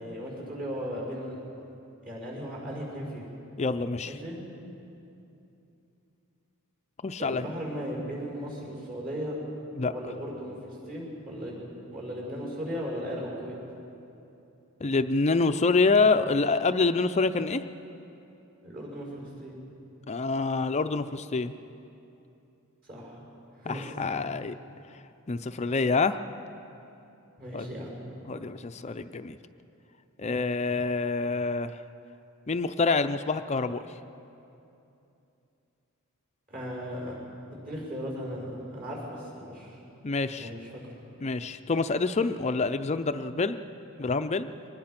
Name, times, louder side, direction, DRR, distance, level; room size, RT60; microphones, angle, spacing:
voice 1, 0.0-1.4 2.0-3.2 4.0-4.4 7.2-9.4 9.9-11.6 11.9-13.5 18.6-19.6 22.8-23.2 23.6-24.1 27.4-28.0 36.5-37.2 37.5-39.8 40.3-40.7, equal, 40° right, -2 dB, 6.1 m, -37 dB
voice 2, 3.6-4.2 7.0-7.5 9.8-9.9 14.8-17.6 20.1-21.5 23.7-24.5 25.3-26.2 27.5-27.7 28.3-29.4 30.2-31.8 32.5-33.8 40.0-40.5 41.2-43.6 44.0-44.5, left 3 dB, 30° left, 10 dB, 0.5 m, -26 dB
24.5 x 20.0 x 5.9 m, 2.8 s
head